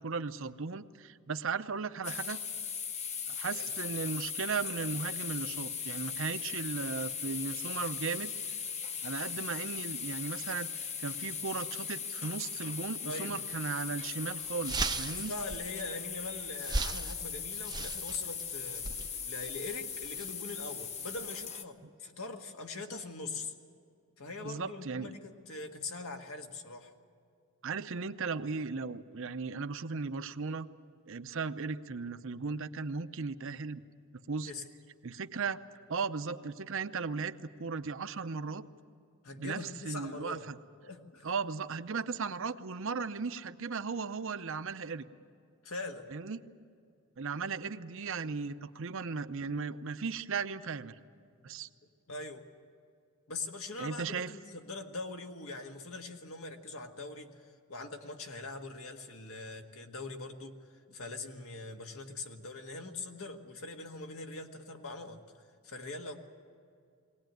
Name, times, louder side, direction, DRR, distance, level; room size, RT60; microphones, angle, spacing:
voice 1, 0.0-2.4 3.3-8.3 9.0-10.7 11.0-15.3 24.4-25.1 27.6-30.7 31.1-33.8 34.1-34.5 35.0-35.6 35.9-38.7 39.4-40.6 41.2-45.0 46.1-46.4 47.2-51.0 51.4-51.7 53.8-54.3, right 5 dB, 60° right, 11 dB, 0.7 m, -36 dB
sound 1, 2.0-21.6, left 7 dB, 30° left, 0.8 m, -39 dB
voice 2, 13.1-13.4 15.0-23.5 24.2-26.9 34.5-34.6 39.2-40.5 40.8-41.3 45.6-46.1 52.1-52.4 53.3-60.6 60.9-66.2, left 3 dB, 70° left, 4 dB, 1.7 m, -42 dB
sound 2, 13.5-13.7 14.1-14.2 14.4-21.5, right 3 dB, 20° right, 0.6 m, -39 dB
21.5 x 18.5 x 9.2 m, 2.3 s
head